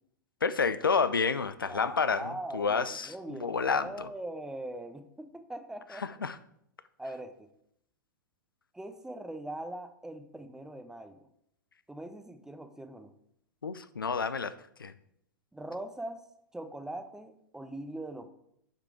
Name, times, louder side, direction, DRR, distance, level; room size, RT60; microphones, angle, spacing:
voice 1, 0.4-4.1 6.0-6.4 13.6-14.5 14.8-14.9, left 5 dB, 90° left, 14 dB, 0.5 m, -29 dB
voice 2, 1.7-6.3 7.0-7.5 8.7-11.3 11.9-13.1 15.5-16.2 16.5-18.3, right 1 dB, 5° right, 9 dB, 0.8 m, -41 dB
9.1 x 5.1 x 4.8 m, 0.73 s
hypercardioid pair, 105°, 11 cm